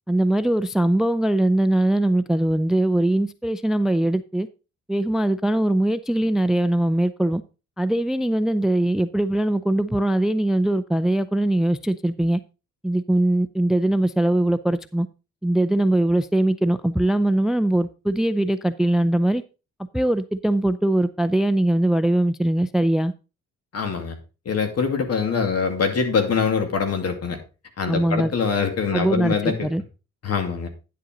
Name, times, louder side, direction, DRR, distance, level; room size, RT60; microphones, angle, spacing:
voice 1, 0.1-4.5 4.9-7.4 7.8-12.4 12.8-15.1 15.4-19.4 19.9-23.1 27.9-28.3 28.9-29.8, right 1 dB, ahead, 0.4 m, -21 dB
voice 2, 23.7-24.2 24.5-27.4 27.8-29.7 30.2-30.7, left 5 dB, 55° left, 2.5 m, -24 dB
10.5 x 7.7 x 3.9 m
cardioid pair, 90°, 30 cm